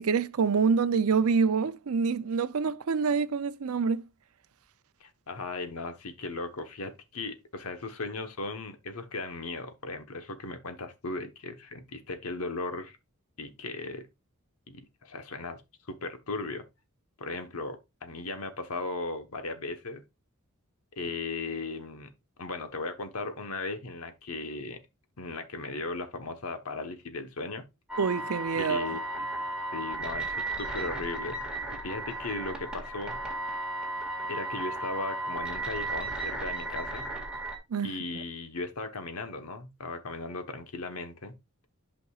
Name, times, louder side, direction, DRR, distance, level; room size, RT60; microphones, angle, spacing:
voice 1, 0.0-4.0 28.0-28.9 37.7-37.9, right 5 dB, 70° right, 0.5 m, -26 dB
voice 2, 5.0-13.0 13.4-14.0 14.7-15.6 15.9-16.6 17.2-20.0 21.0-22.1 22.4-24.8 25.2-27.6 28.6-29.0 29.7-31.4 31.8-33.2 34.3-37.0 37.8-41.3, left 3 dB, 75° left, 1.2 m, -37 dB
sound 1, 27.9-37.6, right 2 dB, 5° right, 1.9 m, -35 dB
11.5 x 5.2 x 2.4 m
head